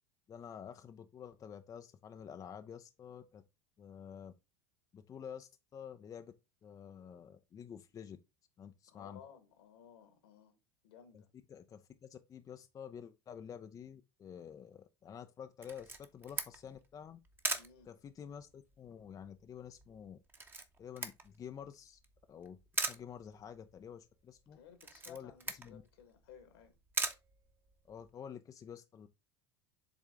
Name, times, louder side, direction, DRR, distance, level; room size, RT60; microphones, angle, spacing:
voice 1, 0.3-3.4 3.8-4.3 4.9-6.3 6.6-8.2 8.6-9.2 11.1-11.2 11.5-17.2 17.9-20.2 20.8-22.0 22.3-24.6 25.1-25.8 27.9-29.1, left 8 dB, 25° left, 0.5 m, -49 dB
voice 2, 8.9-10.6 10.8-11.3 17.5-17.9 24.5-26.8, left 8 dB, 70° left, 1.6 m, -58 dB
Camera, 15.6-28.1, right 3 dB, 15° right, 1.0 m, -42 dB
7.4 x 3.6 x 3.6 m
hypercardioid pair, 80°, 13 cm